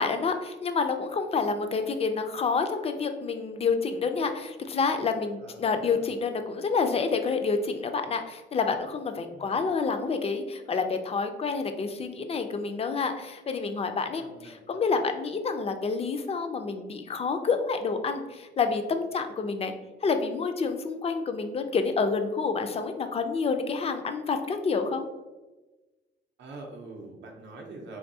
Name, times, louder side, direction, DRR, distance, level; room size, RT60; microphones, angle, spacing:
voice 1, 0.0-19.7 20.0-25.1, left 4 dB, 30° left, 7 dB, 0.4 m, -28 dB
voice 2, 5.4-6.0 9.3-9.6 14.2-14.5 26.4-28.0, right 3 dB, 65° right, 1 dB, 0.6 m, -44 dB
3.5 x 2.6 x 2.6 m, 1.2 s
cardioid pair, 90°, 20 cm